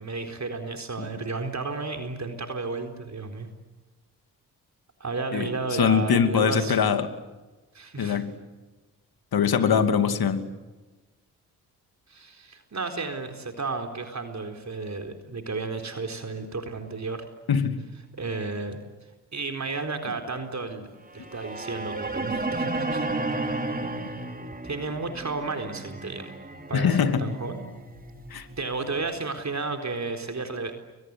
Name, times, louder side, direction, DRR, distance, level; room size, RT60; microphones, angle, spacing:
voice 1, 0.0-3.5 5.0-6.8 7.7-8.2 12.1-17.3 18.2-18.8 19.3-20.9 21.1-23.1 24.6-26.3 26.7-27.6 28.3-30.7, right 3 dB, 35° right, 5 dB, 4.1 m, -33 dB
voice 2, 5.3-7.1 8.0-8.3 9.3-10.4 17.5-17.8 26.7-27.2 28.3-28.5, left 7 dB, 50° left, 9 dB, 2.8 m, -23 dB
sound 1, 21.1-29.2, right 2 dB, 20° right, 4.4 m, -33 dB
30.0 x 23.5 x 8.0 m, 1.2 s
hypercardioid pair, 40°, 45 cm